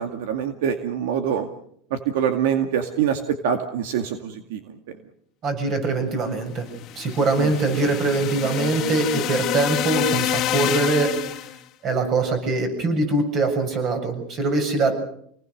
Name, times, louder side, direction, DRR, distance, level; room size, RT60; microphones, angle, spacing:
voice 1, 0.0-1.5 1.9-5.0 7.4-7.5, right 8 dB, 75° right, 7 dB, 2.2 m, -25 dB
voice 2, 5.4-6.7 7.0-11.1 11.8-14.9, right 3 dB, 35° right, 6 dB, 7.4 m, -23 dB
sound 1, 6.7-11.6, left 12 dB, 35° left, 2.0 m, -27 dB
28.0 x 19.5 x 6.6 m, 0.67 s
supercardioid pair, 150°, 0 cm